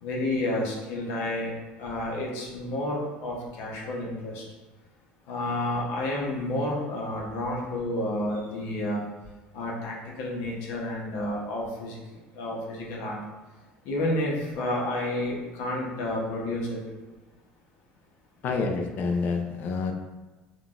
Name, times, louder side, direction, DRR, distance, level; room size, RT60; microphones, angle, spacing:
voice 1, 0.0-4.4 5.3-9.0 9.5-13.2 13.8-16.8, left 1 dB, 80° left, -2 dB, 0.8 m, -30 dB
voice 2, 18.4-19.9, left 4 dB, 50° left, 4 dB, 0.4 m, -28 dB
3.7 x 2.3 x 2.4 m, 1.2 s
cardioid pair, 125°, 4 cm